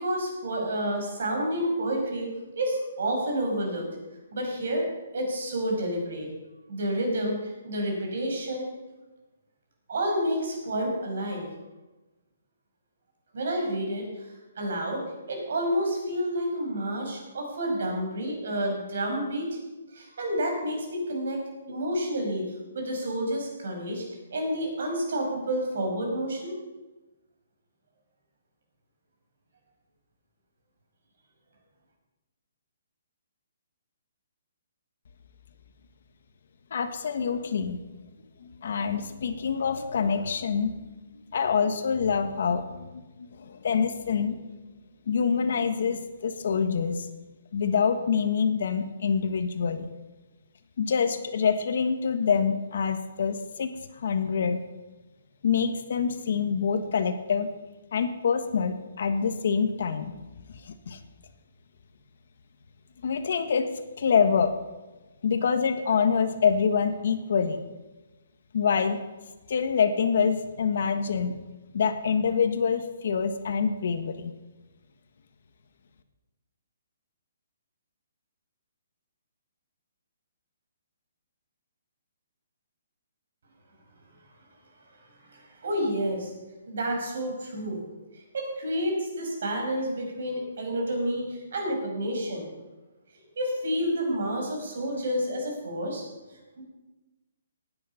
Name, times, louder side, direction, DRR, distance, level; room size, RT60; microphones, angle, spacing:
voice 1, 0.0-3.9 4.3-4.9 5.1-6.3 6.7-8.7 9.9-11.5 13.3-14.3 14.6-19.5 19.9-21.4 21.7-24.0 24.3-26.5 85.3-86.3 86.7-87.8 88.3-92.5 93.4-96.0 96.6-96.7, equal, 55° right, 1 dB, 5.6 m, -29 dB
voice 2, 36.7-37.8 38.4-40.7 41.3-43.0 43.4-44.4 45.1-47.1 47.5-49.9 50.8-54.6 55.4-57.5 57.9-60.1 60.5-61.0 63.0-63.7 64.0-64.5 65.2-67.6 68.5-69.0 69.5-71.4 71.7-74.3, left 6 dB, 55° left, 8 dB, 1.4 m, -26 dB
17.5 x 9.8 x 5.7 m, 1.1 s
hypercardioid pair, 175°, 0 cm